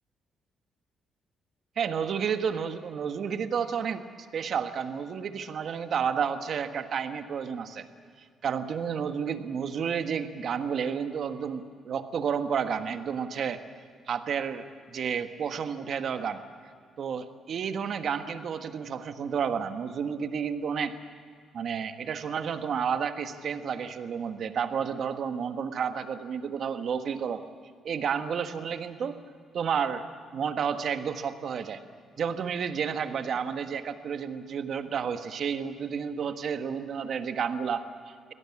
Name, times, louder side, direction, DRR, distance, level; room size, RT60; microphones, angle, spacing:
voice 1, 1.8-4.0 4.3-7.9 8.4-13.6 14.1-16.4 17.0-20.9 21.5-27.4 27.8-29.2 29.5-30.1 30.3-31.8 32.2-38.3, right 7 dB, 60° right, 8 dB, 1.5 m, -31 dB
25.0 x 17.0 x 8.6 m, 2.1 s
cardioid pair, 90°, 0 cm